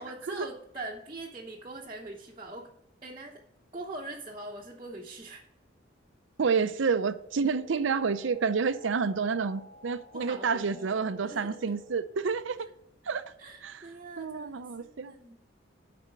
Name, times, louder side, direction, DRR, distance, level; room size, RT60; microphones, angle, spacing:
voice 1, 0.0-2.7 3.0-3.4 3.7-5.4 10.1-10.9 11.2-11.7 13.4-15.4, right 2 dB, 25° right, 0.9 m, -42 dB
voice 2, 6.4-12.7 13.1-13.2 13.6-13.9 14.2-15.1, right 5 dB, 75° right, 0.5 m, -29 dB
sound 1, 7.2-12.2, left 3 dB, 25° left, 4.0 m, -51 dB
10.5 x 4.2 x 6.5 m
head